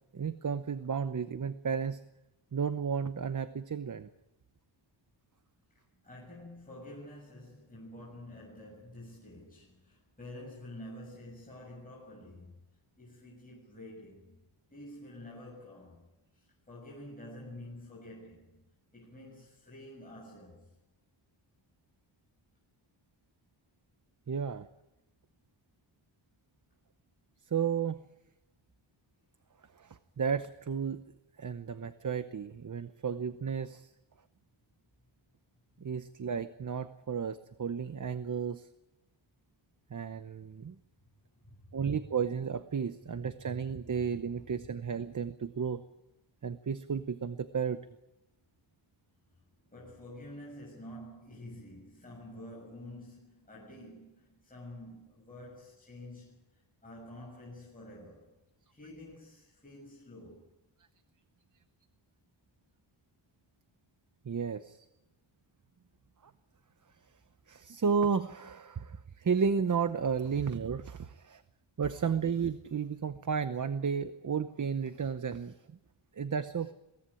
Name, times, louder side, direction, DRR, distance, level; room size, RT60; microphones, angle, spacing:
voice 1, 0.1-2.0 2.5-4.1 24.3-24.7 27.5-28.0 29.8-31.0 31.4-33.9 35.8-38.7 39.9-40.8 41.7-45.8 46.4-47.9 64.2-64.8 67.5-71.4 71.8-75.8 76.1-76.7, right 6 dB, 40° right, 0.8 m, -33 dB
voice 2, 6.0-12.6 13.0-14.4 14.7-16.0 16.3-18.6 18.9-20.7 35.8-35.9 41.4-41.9 44.6-44.7 49.7-58.3 58.7-60.5, left 1 dB, 15° left, 6.8 m, -49 dB
23.0 x 17.5 x 10.0 m
wide cardioid pair, 155°, 49 cm